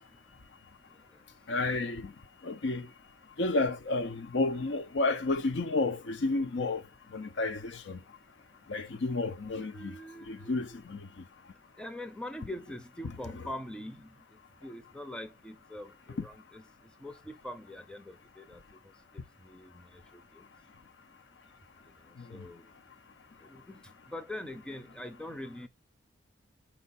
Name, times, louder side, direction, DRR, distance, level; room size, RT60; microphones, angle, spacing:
voice 1, 1.5-2.1 2.4-2.9 3.4-6.8 7.1-7.6 7.9-8.0 8.7-9.9 10.3-11.0, left 2 dB, 65° left, 0.6 m, -31 dB
voice 2, 9.5-10.8 11.8-16.6 17.0-20.4 22.1-22.7 23.4-25.7, left 1 dB, 5° left, 0.6 m, -44 dB
5.3 x 4.4 x 4.1 m
head